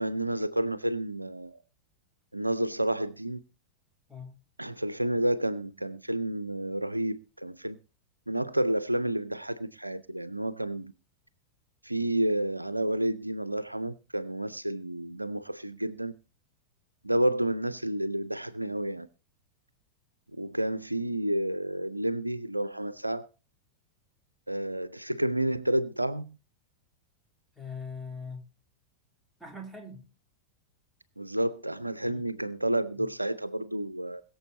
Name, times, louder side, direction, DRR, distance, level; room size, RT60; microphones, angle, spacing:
voice 1, 0.0-1.6 2.3-3.4 4.6-7.8 8.3-10.9 11.8-16.1 17.0-19.1 20.4-23.3 24.5-26.4 31.2-34.2, right 1 dB, 85° right, 0.6 m, -30 dB
voice 2, 27.6-28.4 29.4-30.1 32.0-32.3 33.0-33.1, left 4 dB, ahead, 3.4 m, -41 dB
21.5 x 7.2 x 4.1 m
figure-of-eight pair, 90°, 0 cm